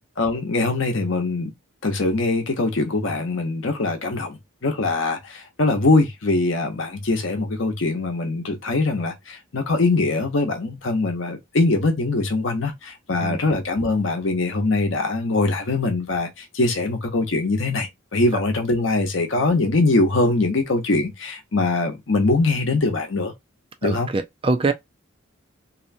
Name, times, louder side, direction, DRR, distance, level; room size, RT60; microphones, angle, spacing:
voice 1, 0.2-1.5 1.8-23.3 23.8-24.1, left 2 dB, 65° left, 0.8 m, -22 dB
voice 2, 23.8-24.7, right 3 dB, 25° right, 0.4 m, -23 dB
2.7 x 2.2 x 2.5 m
head